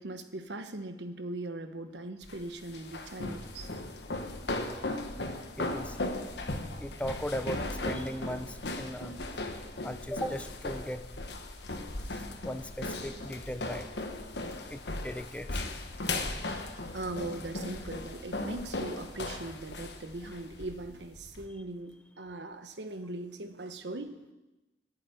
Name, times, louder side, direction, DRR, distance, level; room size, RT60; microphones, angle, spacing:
voice 1, 0.0-3.7 16.9-24.3, right 2 dB, 85° right, 8 dB, 1.1 m, -40 dB
sound 1, 2.2-21.5, left 2 dB, 80° left, 1.3 m, -37 dB
voice 2, 5.6-6.0 6.8-9.2 9.8-11.1 12.1-13.9 14.7-15.8, equal, 5° left, 10 dB, 0.5 m, -38 dB
14.0 x 7.1 x 9.5 m, 1.1 s
head